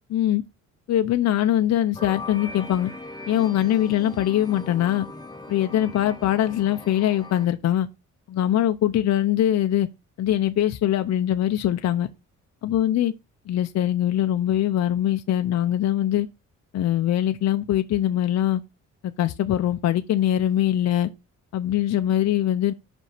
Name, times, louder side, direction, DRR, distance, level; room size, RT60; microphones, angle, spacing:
voice 1, 0.1-0.4 0.9-2.9 3.3-5.1 5.5-7.9 8.3-9.9 10.2-12.1 12.6-13.1 13.5-16.3 16.7-18.6 19.0-21.1 21.5-22.7, left 12 dB, 60° left, 0.7 m, -22 dB
sound 1, 1.9-7.5, left 2 dB, 15° left, 1.3 m, -40 dB
5.4 x 5.3 x 5.8 m
cardioid pair, 90°, 30 cm